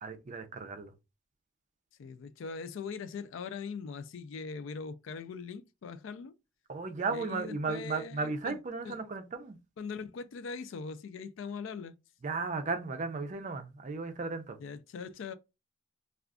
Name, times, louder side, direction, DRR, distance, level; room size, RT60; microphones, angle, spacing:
voice 1, 0.0-0.9 6.7-9.6 12.2-14.6, right 4 dB, 40° right, 0.4 m, -35 dB
voice 2, 2.0-6.3 7.1-8.6 8.8-9.0 9.8-11.9 14.6-15.3, left 5 dB, 75° left, 0.4 m, -41 dB
2.4 x 2.3 x 3.5 m
head